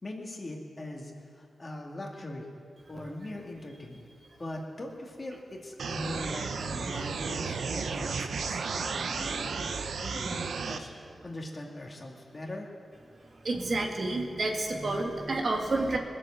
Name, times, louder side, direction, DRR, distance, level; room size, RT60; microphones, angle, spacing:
voice 1, 0.0-2.5 2.9-4.1 4.4-12.7, left 1 dB, 35° left, 0 dB, 2.4 m, -41 dB
sound 1, 5.8-10.8, right 5 dB, 80° right, 0.8 m, -33 dB
voice 2, 13.4-16.0, right 2 dB, 60° right, 1 dB, 1.9 m, -29 dB
20.0 x 7.6 x 7.5 m, 2.2 s
cardioid pair, 60°, 0 cm